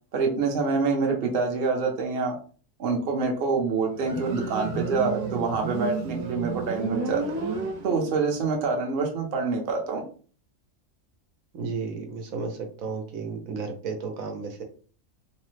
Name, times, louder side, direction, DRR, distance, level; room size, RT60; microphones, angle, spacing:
voice 1, 0.1-2.3 2.8-7.2 7.8-10.0, right 4 dB, 50° right, 2 dB, 0.8 m, -26 dB
Motorcycle, 3.9-8.3, right 4 dB, 70° right, 1.1 m, -31 dB
voice 2, 11.5-14.6, right 4 dB, 90° right, 4 dB, 1.2 m, -33 dB
3.1 x 2.1 x 3.1 m, 0.40 s
omnidirectional pair, 1.4 m